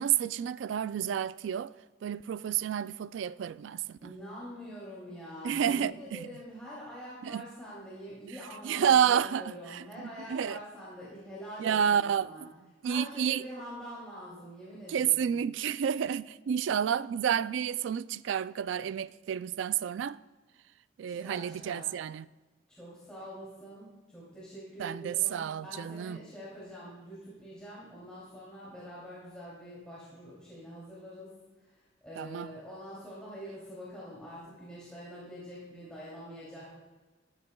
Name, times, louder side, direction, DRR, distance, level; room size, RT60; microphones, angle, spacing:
voice 1, 0.0-1.7 2.0-3.8 5.4-6.2 7.2-7.4 8.6-9.4 9.7-9.8 10.3-10.6 11.6-12.3 12.8-13.4 14.9-20.2 21.0-22.2 24.8-26.2 32.2-32.5, right 8 dB, 75° right, 0.3 m, -29 dB
voice 2, 4.0-12.4 12.8-15.4 21.1-21.9 22.7-31.3 31.6-36.8, equal, 5° left, 2.7 m, -45 dB
13.5 x 12.5 x 2.3 m
head